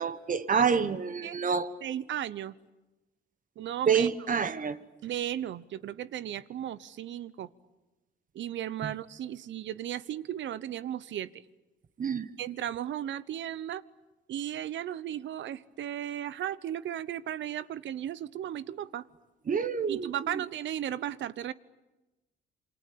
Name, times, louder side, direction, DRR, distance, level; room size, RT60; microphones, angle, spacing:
voice 1, 0.0-1.7 3.9-4.8 8.8-8.9 12.0-12.3 19.5-20.4, right 6 dB, 40° right, 1.3 m, -28 dB
voice 2, 1.8-2.5 3.6-4.1 5.0-7.5 8.3-11.3 12.4-13.8 14.3-19.0 19.9-21.5, right 11 dB, 70° right, 0.9 m, -35 dB
27.5 x 24.0 x 8.6 m
cardioid pair, 90°, 20 cm